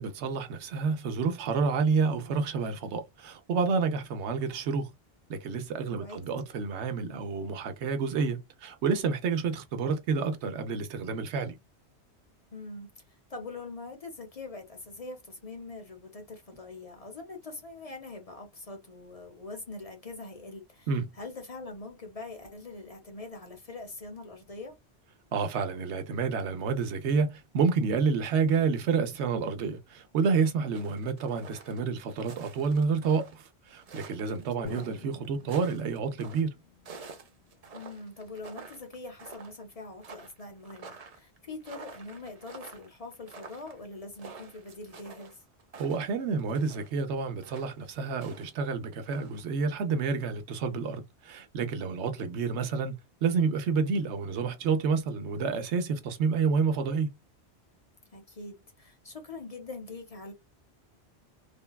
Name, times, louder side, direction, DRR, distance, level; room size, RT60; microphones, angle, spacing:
voice 1, 0.0-4.9 5.3-11.6 20.9-21.1 25.3-36.5 45.8-57.1, right 5 dB, 85° right, 1.0 m, -29 dB
voice 2, 12.5-24.8 34.6-34.7 37.7-45.4 58.1-60.3, left 3 dB, 40° left, 0.7 m, -43 dB
sound 1, 30.7-33.4 33.8-36.4 36.9-38.9 39.2-39.6 40.0-46.9 47.4-48.5 48.8-49.4, right 4 dB, 45° right, 0.6 m, -49 dB
Drum, 34.6-38.6, left 7 dB, 90° left, 1.2 m, -50 dB
3.4 x 2.2 x 2.2 m
omnidirectional pair, 1.1 m